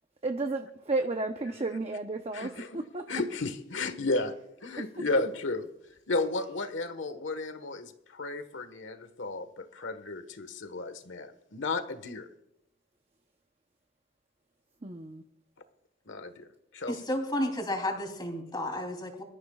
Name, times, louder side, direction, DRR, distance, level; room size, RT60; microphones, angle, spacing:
voice 1, 0.2-3.1 14.8-15.2, right 3 dB, 35° right, 5 dB, 0.8 m, -33 dB
voice 2, 2.3-2.8 3.1-4.3 4.6-5.7 6.1-12.3 16.1-16.5 16.7-17.0, left 2 dB, 80° left, 11 dB, 1.4 m, -33 dB
voice 3, 16.9-19.2, left 1 dB, 25° left, 3 dB, 3.2 m, -32 dB
24.5 x 14.0 x 2.4 m, 0.83 s
head